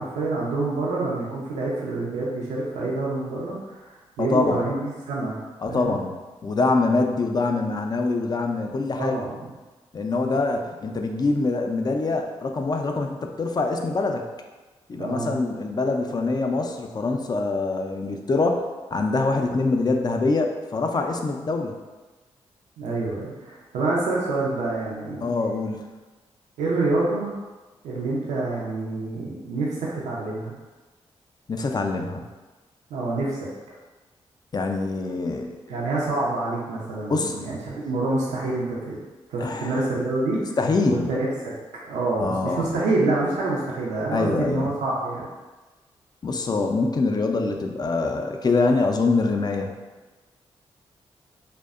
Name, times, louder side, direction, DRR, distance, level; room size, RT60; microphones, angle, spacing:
voice 1, 0.0-3.9 4.2-5.4 5.7-6.0 9.0-9.4 15.0-15.3 22.8-25.3 26.6-27.3 27.8-30.5 32.9-33.5 35.7-39.0 39.3-40.4 40.9-41.5 41.8-45.3, right 2 dB, 85° right, -5 dB, 0.5 m, -27 dB
voice 2, 4.2-4.6 5.6-6.1 6.4-9.1 9.9-14.3 14.9-21.8 25.2-25.9 31.5-32.2 34.5-35.8 37.1-37.5 39.4-39.9 40.6-41.1 42.2-42.7 44.1-44.7 46.2-49.7, left 3 dB, 35° left, 4 dB, 0.4 m, -24 dB
2.6 x 2.1 x 2.4 m, 1.2 s
supercardioid pair, 40°, 12 cm